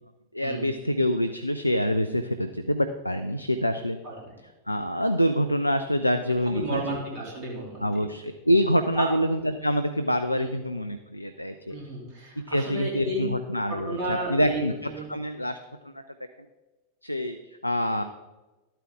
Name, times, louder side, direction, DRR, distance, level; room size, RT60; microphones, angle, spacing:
voice 1, 0.3-4.0 4.7-6.8 7.8-11.7 12.5-14.7 15.1-15.6 17.0-17.4 17.6-18.0, equal, 85° left, 9 dB, 0.4 m, -26 dB
voice 2, 6.4-8.0 8.9-9.1 10.4-10.6 11.7-13.2 13.7-14.6 14.9-15.1, right 1 dB, 40° right, -3 dB, 3.1 m, -33 dB
12.5 x 9.1 x 3.7 m, 1.1 s
figure-of-eight pair, 90°, 0 cm